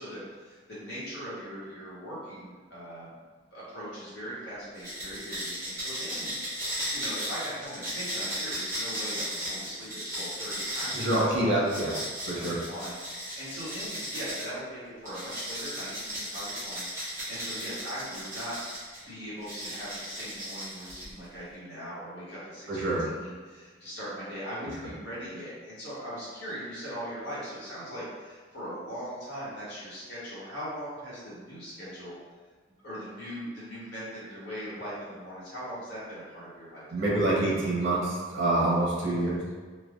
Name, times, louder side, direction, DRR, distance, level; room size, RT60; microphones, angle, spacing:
voice 1, 0.0-3.1 3.5-11.7 12.3-18.6 19.1-32.1 32.8-37.1 39.1-39.3, equal, 60° left, -9 dB, 1.2 m, -40 dB
sound 1, 4.8-14.5 15.1-19.0 19.4-21.2, equal, 15° right, 1.2 m, -36 dB
voice 2, 10.9-11.9 12.3-12.6 22.7-23.0 36.9-39.4, right 1 dB, 75° right, -5 dB, 0.9 m, -26 dB
3.2 x 2.3 x 2.4 m, 1.5 s
head